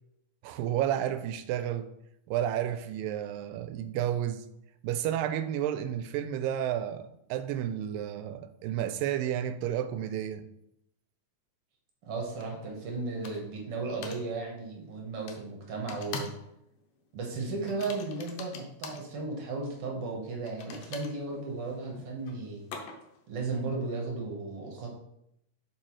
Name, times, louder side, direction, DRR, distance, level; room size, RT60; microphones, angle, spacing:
voice 1, 0.4-1.9 2.3-4.5 4.8-10.5, right 10 dB, 90° right, 2.2 m, -31 dB
voice 2, 12.0-16.3 17.1-22.7 23.3-24.9, right 3 dB, 60° right, 1.7 m, -35 dB
sound 1, 12.4-12.5 13.2-13.6 14.0-14.2 15.3-15.4 15.9-16.5 16.7-17.0 17.7-19.1 20.5-23.2, left 5 dB, 85° left, 2.5 m, -43 dB
7.5 x 4.7 x 3.1 m
omnidirectional pair, 3.8 m